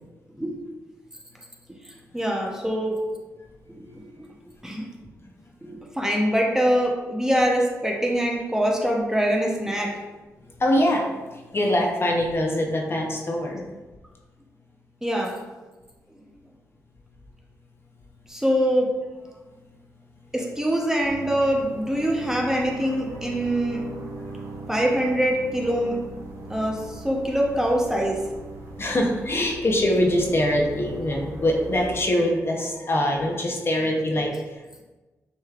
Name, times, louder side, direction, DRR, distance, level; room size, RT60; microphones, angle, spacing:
voice 1, 2.1-3.0 3.8-4.3 4.6-4.9 5.6-10.0 15.0-15.4 18.3-18.9 20.3-23.9 24.7-26.0 26.5-28.2, equal, 10° right, -1 dB, 0.8 m, -24 dB
voice 2, 10.6-13.6 28.8-34.8, left 1 dB, 40° left, 0 dB, 0.9 m, -23 dB
sound 1, 21.0-32.0, right 2 dB, 65° right, 0.9 m, -39 dB
6.3 x 3.1 x 2.4 m, 1.2 s
cardioid pair, 65°, 6 cm